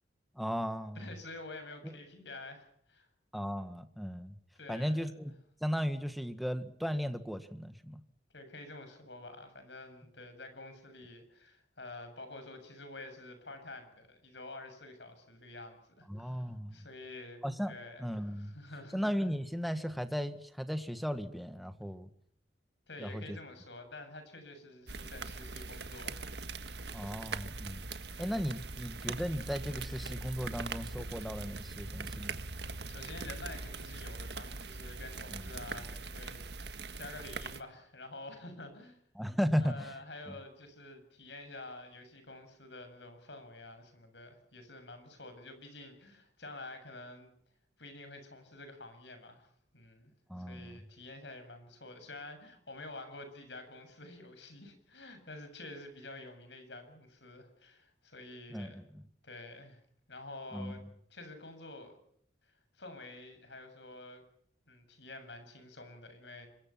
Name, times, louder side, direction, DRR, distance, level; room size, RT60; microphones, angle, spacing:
voice 1, 0.3-1.1 3.3-4.3 4.7-5.3 5.6-8.0 16.1-16.8 17.4-17.7 18.0-18.5 18.9-22.1 23.0-23.4 26.9-27.9 28.2-32.4 35.3-35.4 39.1-39.9 40.3-40.4 50.3-50.8 58.5-59.1 60.5-60.8, equal, ahead, 9 dB, 1.6 m, -36 dB
voice 2, 1.0-3.1 4.6-5.0 8.3-17.4 17.7-19.0 22.9-26.2 28.1-28.4 32.7-39.0 39.6-47.3 47.8-50.1 50.5-58.8 59.2-59.8 60.1-60.8 61.1-61.9 62.7-64.2 64.7-66.5, left 2 dB, 75° left, 8 dB, 7.6 m, -49 dB
sound 1, 24.9-37.6, right 3 dB, 65° right, 1.7 m, -42 dB
27.0 x 22.5 x 5.9 m, 0.68 s
head